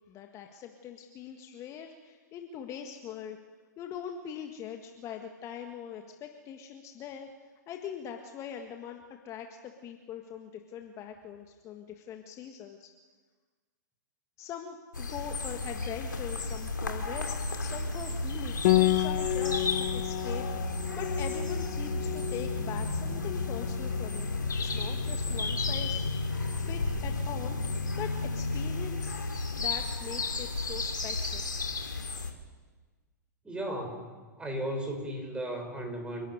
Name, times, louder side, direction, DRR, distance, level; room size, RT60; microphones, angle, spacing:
voice 1, 0.1-3.4 3.8-7.3 7.7-12.9 14.4-20.4 20.9-24.3 24.6-27.6 28.0-29.2 29.6-31.5, left 8 dB, 30° left, 4 dB, 1.7 m, -42 dB
sound 1, 14.9-32.3, left 3 dB, 85° left, 2.7 m, -33 dB
Piano, 18.6-28.0, left 19 dB, 45° left, 0.7 m, -32 dB
voice 2, 33.4-34.1 34.4-36.3, right 1 dB, 10° right, 3 dB, 5.7 m, -35 dB
29.0 x 12.0 x 9.4 m, 1.4 s
figure-of-eight pair, 110°, 10 cm